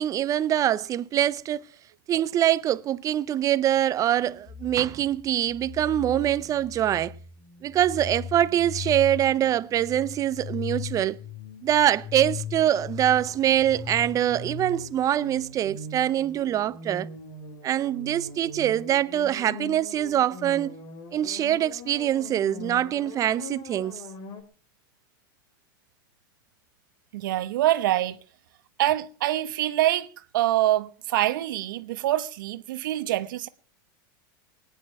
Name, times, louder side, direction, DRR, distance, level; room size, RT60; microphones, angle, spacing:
voice 1, 0.0-1.6 2.1-7.1 7.6-11.2 11.6-17.1 17.6-20.8 21.1-24.0, right 11 dB, 30° right, 0.7 m, -24 dB
sound 1, 4.5-24.4, left 5 dB, 45° left, 3.3 m, -40 dB
voice 2, 27.1-28.2 28.8-33.5, right 14 dB, 75° right, 1.1 m, -25 dB
19.5 x 9.9 x 5.9 m
hypercardioid pair, 120°, 11 cm